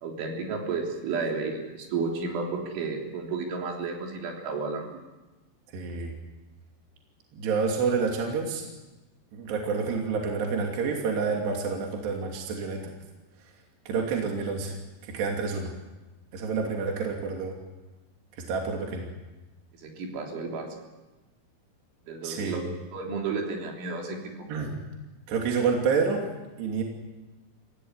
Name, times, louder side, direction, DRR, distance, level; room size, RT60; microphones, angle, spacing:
voice 1, 0.0-5.0 19.8-20.7 22.1-24.2, right 4 dB, 80° right, 1 dB, 6.0 m, -32 dB
voice 2, 5.7-6.1 7.3-8.7 9.3-12.9 13.9-14.8 15.0-15.7 16.3-17.6 18.5-19.1 22.2-22.7 24.5-24.8 25.3-26.3 26.6-26.8, right 5 dB, 65° right, 1 dB, 4.7 m, -28 dB
26.0 x 16.5 x 9.7 m, 1.1 s
omnidirectional pair, 5.5 m